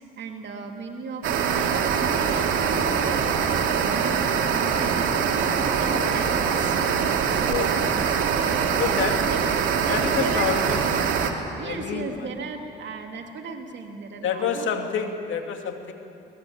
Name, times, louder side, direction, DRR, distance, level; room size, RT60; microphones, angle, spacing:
voice 1, 0.0-5.0 5.3-6.8 8.7-9.4 9.7-10.6 11.5-14.7, right 4 dB, 65° right, 2 dB, 2.8 m, -36 dB
sound 1, 1.2-11.3, right 7 dB, 85° right, 2.4 m, -23 dB
sound 2, 1.3-9.0, right 3 dB, 25° right, 2.3 m, -36 dB
voice 2, 7.4-8.1 8.8-9.6 9.9-12.3 14.2-15.9, left 6 dB, 75° left, 4 dB, 2.6 m, -29 dB
25.0 x 20.5 x 8.8 m, 2.5 s
cardioid pair, 90°, 20 cm